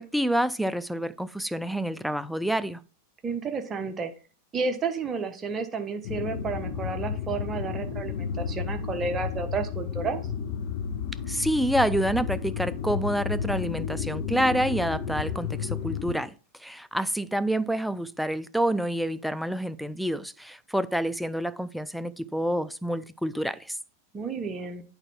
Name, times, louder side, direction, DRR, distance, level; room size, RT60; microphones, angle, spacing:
voice 1, 0.0-2.8 11.3-16.3 16.6-23.8, right 1 dB, ahead, 0.4 m, -28 dB
voice 2, 3.2-4.1 4.5-10.2 24.1-24.8, right 4 dB, 20° right, 1.2 m, -31 dB
sound 1, 6.0-16.2, left 7 dB, 45° left, 1.0 m, -32 dB
8.8 x 4.5 x 4.3 m
figure-of-eight pair, 90°, 0 cm